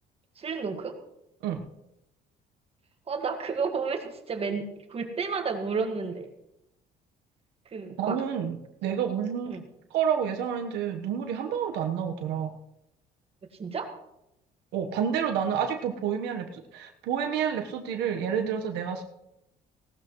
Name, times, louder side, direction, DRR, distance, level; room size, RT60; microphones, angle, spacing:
voice 1, 0.4-0.9 3.1-6.3 7.7-8.2 9.5-9.6 13.6-13.9, right 5 dB, 35° right, 5 dB, 1.8 m, -31 dB
voice 2, 8.0-8.6 8.8-9.6 9.9-12.5 14.7-19.0, right 8 dB, 85° right, 4 dB, 1.2 m, -29 dB
17.5 x 12.5 x 3.1 m, 0.86 s
cardioid pair, 110°, 17 cm